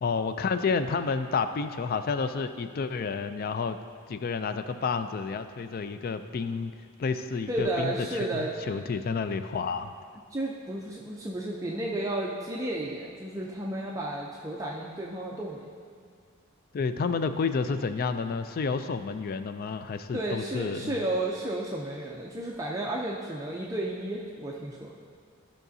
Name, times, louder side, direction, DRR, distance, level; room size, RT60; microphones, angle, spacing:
voice 1, 0.0-3.8 4.1-6.7 7.0-7.9 8.7-9.9 16.7-21.0, left 5 dB, 45° left, 10 dB, 0.3 m, -30 dB
voice 2, 7.5-8.5 10.3-15.7 20.1-24.9, right 1 dB, 15° right, -3 dB, 0.5 m, -32 dB
12.5 x 5.8 x 2.7 m, 2.1 s
head